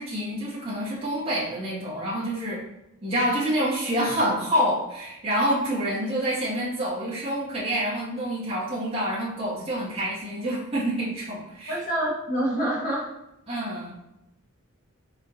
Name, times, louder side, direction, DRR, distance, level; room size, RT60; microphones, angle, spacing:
voice 1, 0.0-2.6 3.0-11.8 13.5-13.9, equal, 25° right, -10 dB, 1.5 m, -27 dB
voice 2, 11.7-13.1, right 1 dB, 40° left, -7 dB, 1.2 m, -26 dB
4.7 x 4.2 x 2.6 m, 0.89 s
head